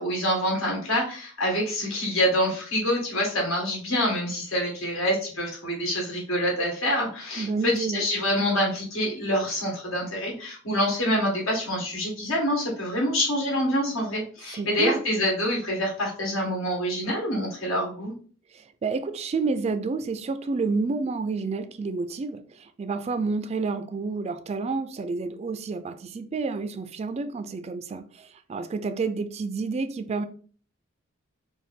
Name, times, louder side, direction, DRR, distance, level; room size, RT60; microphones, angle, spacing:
voice 1, 0.0-18.1, equal, 85° left, 1.8 m, -26 dB
voice 2, 7.4-8.1 14.5-15.0 18.5-30.3, right 4 dB, 30° right, 0.3 m, -29 dB
4.8 x 2.2 x 3.5 m
head